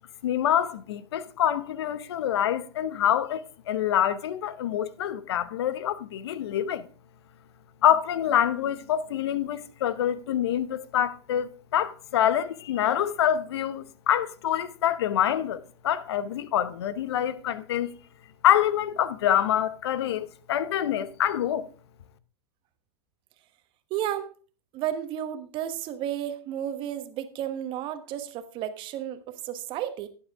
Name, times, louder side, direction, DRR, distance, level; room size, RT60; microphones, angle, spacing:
voice 1, 0.2-6.9 7.8-17.9 18.4-21.7, left 10 dB, 70° left, 0.9 m, -26 dB
voice 2, 23.9-24.3 24.7-30.1, right 11 dB, 35° right, 1.2 m, -32 dB
11.5 x 9.3 x 3.5 m
hypercardioid pair, 125°, 14 cm